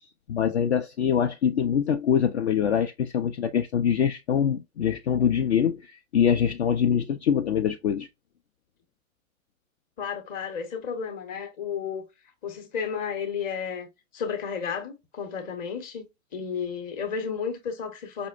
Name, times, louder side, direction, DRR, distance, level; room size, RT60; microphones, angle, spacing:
voice 1, 0.3-8.1, left 8 dB, 50° left, 0.4 m, -24 dB
voice 2, 10.0-12.1 12.4-13.9 14.1-18.3, left 6 dB, 20° left, 0.7 m, -32 dB
5.1 x 2.1 x 2.3 m
figure-of-eight pair, 105°, 43 cm